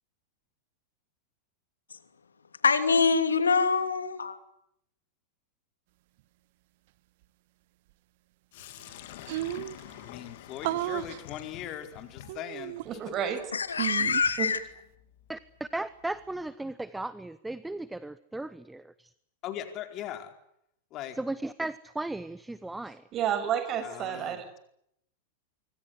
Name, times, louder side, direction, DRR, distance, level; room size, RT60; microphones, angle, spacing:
voice 1, 2.6-4.4 13.5-14.6, left 5 dB, 80° left, 10 dB, 2.7 m, -24 dB
Sink (filling or washing), 8.5-16.4, left 12 dB, 60° left, 3.1 m, -49 dB
sound 1, 8.6-8.7 8.9-9.0 9.3-9.8 10.6-11.2 12.3-13.1 13.8-14.4, right 16 dB, 55° right, 1.5 m, -33 dB
voice 2, 10.0-12.8 19.4-20.3 20.9-21.2 23.8-24.4, left 11 dB, 40° left, 7 dB, 4.6 m, -39 dB
voice 3, 12.9-13.4 14.4-14.5 23.1-24.6, right 9 dB, 35° right, 10 dB, 7.0 m, -30 dB
voice 4, 15.3-19.1 21.1-23.1, right 2 dB, 5° right, 16 dB, 1.1 m, -36 dB
26.5 x 24.5 x 8.3 m, 0.75 s
figure-of-eight pair, 95°, 0 cm